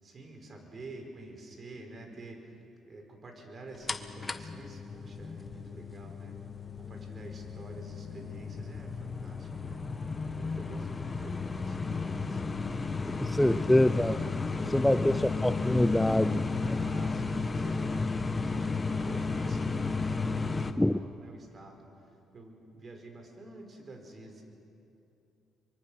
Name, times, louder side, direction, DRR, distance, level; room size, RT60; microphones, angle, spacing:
voice 1, 0.0-6.4 6.8-9.8 10.4-12.4 13.1-14.0 14.6-15.4 16.6-21.9 22.3-24.4, right 2 dB, 40° right, 3 dB, 4.9 m, -48 dB
sound 1, 3.9-20.7, left 4 dB, 30° left, 1.3 m, -33 dB
voice 2, 13.4-14.2 14.7-15.1 15.4-16.5 20.8-21.0, left 1 dB, 5° left, 13 dB, 0.5 m, -24 dB
24.0 x 23.0 x 6.4 m, 2.7 s
supercardioid pair, 65°, 0 cm